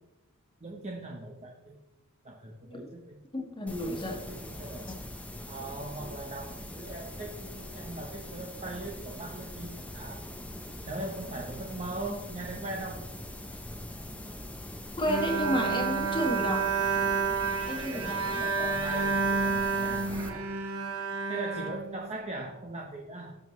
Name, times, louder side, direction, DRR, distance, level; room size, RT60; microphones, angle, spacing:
voice 1, 0.6-1.8 2.2-3.2 3.8-4.9 5.5-10.3 10.8-13.1 17.6-20.5 21.3-23.3, right 2 dB, 30° right, 0 dB, 1.0 m, -40 dB
voice 2, 3.3-4.2 4.8-4.9 6.0-6.1 15.0-16.7 17.7-18.4, equal, 20° left, 2 dB, 1.6 m, -31 dB
sound 1, 3.7-20.3, left 1 dB, 5° left, 0.8 m, -42 dB
Bowed string instrument, 15.1-22.4, right 5 dB, 70° right, 1.2 m, -30 dB
18.0 x 7.2 x 3.2 m, 1.0 s
head